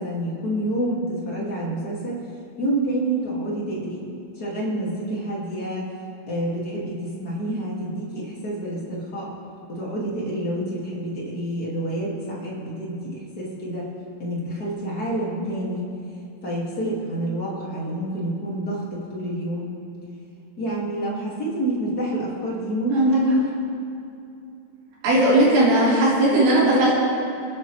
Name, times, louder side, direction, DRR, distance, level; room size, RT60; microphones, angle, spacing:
voice 1, 0.0-2.2 2.6-4.1 4.3-5.9 6.3-9.3 9.7-13.9 14.2-15.8 16.4-19.7 20.6-23.5, right 1 dB, 55° left, -6 dB, 1.0 m, -28 dB
voice 2, 25.0-26.9, right 1 dB, 70° right, -8 dB, 6.2 m, -17 dB
26.0 x 9.5 x 3.2 m, 2.6 s
omnidirectional pair, 5.4 m